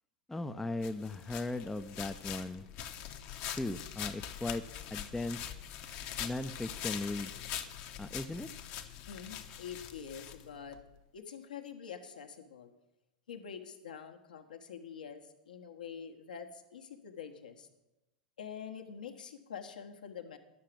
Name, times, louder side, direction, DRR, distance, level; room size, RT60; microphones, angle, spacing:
voice 1, 0.3-2.7 3.5-4.6 4.9-5.4 6.2-7.3 8.0-8.5, left 2 dB, 5° left, 9 dB, 0.4 m, -37 dB
sound 1, 0.8-10.8, left 10 dB, 45° left, 0.9 m, -43 dB
voice 2, 9.1-10.8 11.1-12.7 13.3-17.7 18.4-20.4, left 7 dB, 70° left, 4 dB, 1.2 m, -46 dB
11.0 x 6.6 x 7.5 m, 0.98 s
figure-of-eight pair, 95°, 5 cm